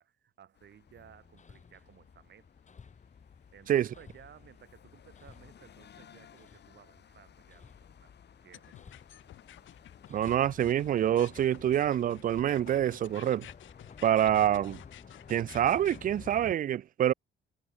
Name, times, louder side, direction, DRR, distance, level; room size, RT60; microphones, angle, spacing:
voice 1, 0.0-2.5 3.5-8.1 8.4-8.8, right 9 dB, 60° right, 5.4 m, -57 dB
sound 1, 0.5-16.4, left 9 dB, 60° left, 5.0 m, -58 dB
Hammer, 0.9-16.5, left 5 dB, 35° left, 3.7 m, -53 dB
sound 2, 8.5-16.0, left 13 dB, 75° left, 1.4 m, -52 dB
voice 2, 10.1-13.5 14.0-14.8 15.3-17.1, right 11 dB, 45° right, 0.4 m, -26 dB
cardioid pair, 90°, 20 cm